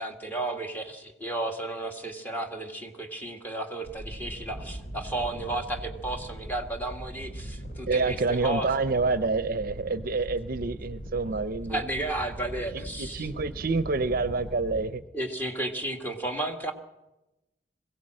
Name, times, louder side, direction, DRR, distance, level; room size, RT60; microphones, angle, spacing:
voice 1, 0.0-8.7 11.7-13.3 15.1-16.7, right 2 dB, 10° left, 3 dB, 1.8 m, -33 dB
sound 1, 3.8-14.9, right 1 dB, 55° left, 3.4 m, -40 dB
voice 2, 7.9-11.8 12.7-15.0, right 3 dB, 55° right, 13 dB, 0.6 m, -28 dB
21.5 x 16.5 x 7.7 m, 0.99 s
head